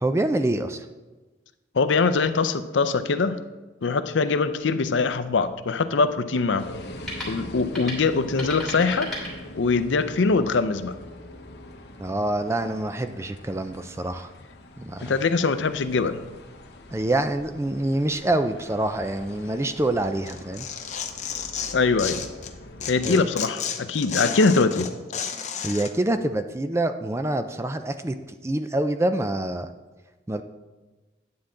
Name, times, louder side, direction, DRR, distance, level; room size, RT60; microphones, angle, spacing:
voice 1, 0.0-0.9 12.0-14.3 14.8-15.1 16.9-20.7 23.0-23.3 25.6-28.1 28.4-29.7 30.3-30.4, right 1 dB, 15° right, 9 dB, 0.4 m, -26 dB
voice 2, 1.7-3.4 3.8-6.7 7.3-9.1 9.6-10.9 15.0-16.2 21.7-22.2 22.9-24.9, left 4 dB, 80° left, 11 dB, 0.5 m, -22 dB
sound 1, 4.6-10.0, left 1 dB, ahead, 2.5 m, -39 dB
sound 2, 6.6-23.2, left 1 dB, 65° left, 1.0 m, -43 dB
Tearing, 20.3-22.5 22.8-25.9, left 7 dB, 40° left, 0.6 m, -32 dB
9.5 x 8.5 x 3.8 m, 1.2 s
head